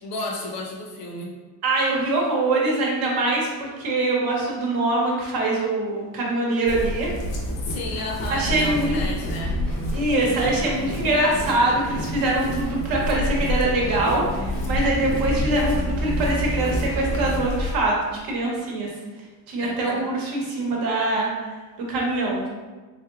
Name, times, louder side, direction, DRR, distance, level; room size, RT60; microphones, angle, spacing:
voice 1, 0.0-1.3 7.7-9.6 19.6-20.1, left 2 dB, 55° left, 0 dB, 0.7 m, -32 dB
voice 2, 1.6-7.1 8.3-9.0 9.9-18.0 18.2-18.9 19.5-21.3 21.9-22.5, right 2 dB, 55° right, -2 dB, 1.0 m, -23 dB
sound 1, 6.7-17.7, left 1 dB, 80° left, 1.1 m, -28 dB
sound 2, 8.2-17.6, right 1 dB, 5° left, 0.6 m, -34 dB
3.9 x 3.3 x 2.3 m, 1.3 s
cardioid pair, 180°, 44 cm